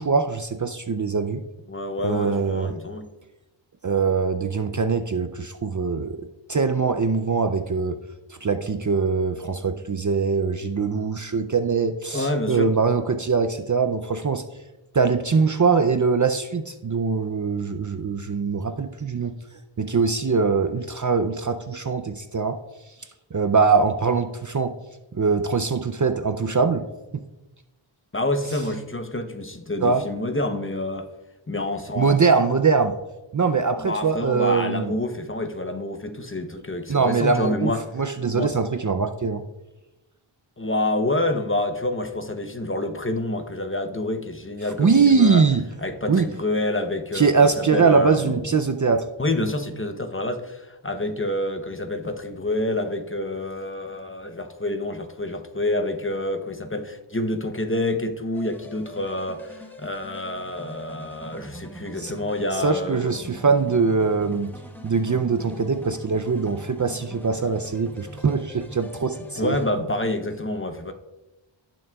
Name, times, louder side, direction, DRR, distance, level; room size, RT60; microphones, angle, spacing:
voice 1, 0.0-1.4 2.0-2.8 3.8-6.2 6.5-8.0 8.3-14.4 14.9-19.3 19.8-22.6 23.3-24.7 25.1-26.9 27.1-27.2 29.8-30.0 32.0-33.0 33.3-34.9 36.9-39.4 44.8-45.6 46.1-46.3 47.1-49.0 62.0-62.1 62.6-64.5 64.8-69.6, right 5 dB, 40° right, 0.5 m, -22 dB
voice 2, 1.7-3.1 12.1-12.7 28.1-31.1 31.5-32.4 33.8-37.8 38.3-38.5 40.6-45.4 45.8-48.5 49.2-63.2 69.4-70.9, left 1 dB, 25° left, 0.8 m, -28 dB
sound 1, 58.3-69.7, equal, 5° left, 1.1 m, -43 dB
17.5 x 6.1 x 2.3 m
wide cardioid pair, 50°, 49 cm